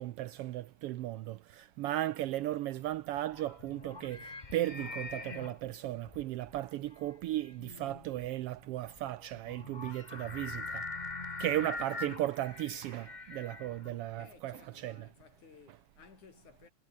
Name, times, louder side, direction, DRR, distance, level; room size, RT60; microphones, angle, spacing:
voice 1, 0.0-10.9 11.4-15.1, right 14 dB, 85° right, 1.3 m, -36 dB
sound 1, 2.8-14.2, left 3 dB, 20° left, 1.2 m, -44 dB
voice 2, 14.2-16.7, left 6 dB, 80° left, 5.2 m, -58 dB
omnidirectional pair, 3.4 m